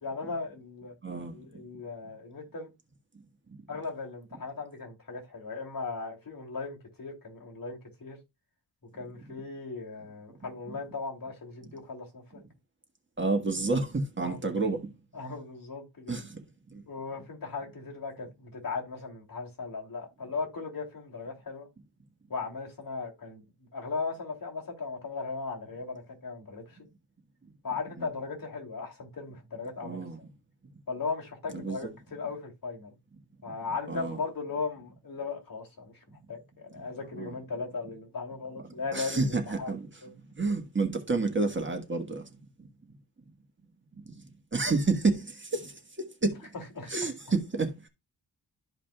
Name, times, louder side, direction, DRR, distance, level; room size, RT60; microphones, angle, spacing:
voice 1, 0.0-0.9 1.3-2.7 3.7-8.2 8.9-12.4 14.2-14.5 15.1-16.2 16.9-21.7 22.3-23.4 23.7-26.8 27.6-30.0 30.9-32.9 33.4-35.9 36.3-39.7 40.0-40.1 46.5-46.9, left 4 dB, 55° left, 2.8 m, -37 dB
voice 2, 1.0-1.4 13.2-14.9 16.1-16.4 16.7-16.8 28.0-28.1 29.8-30.2 31.5-31.8 33.9-34.2 37.2-37.3 38.9-39.9 40.3-42.3 44.5-46.5 46.9-47.9, right 3 dB, 30° right, 1.5 m, -29 dB
13.0 x 4.9 x 2.3 m
wide cardioid pair, 135°, 41 cm